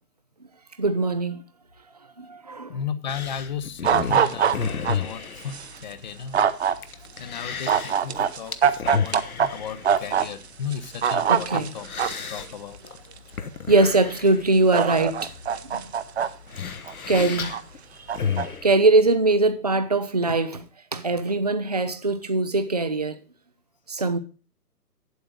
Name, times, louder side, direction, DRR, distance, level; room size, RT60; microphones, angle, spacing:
voice 1, 0.8-1.4 2.2-2.7 11.3-11.7 13.7-15.3 15.7-15.8 17.1-17.6 18.2-20.6 20.9-23.2 23.9-24.2, right 2 dB, 30° right, 0.4 m, -22 dB
voice 2, 2.7-6.5 7.2-11.9 12.3-12.8, left 7 dB, 30° left, 0.7 m, -35 dB
sound 1, 3.1-18.7, left 6 dB, 65° left, 1.2 m, -34 dB
sound 2, 3.8-5.0 5.5-5.7 6.3-6.7 7.7-9.5 9.8-10.3 10.7-12.3 13.1-13.2 14.2-14.3 14.7-16.3 16.9-17.6 18.1-18.5, right 8 dB, 45° right, 0.8 m, -22 dB
8.6 x 8.0 x 6.3 m
figure-of-eight pair, 135°, 47 cm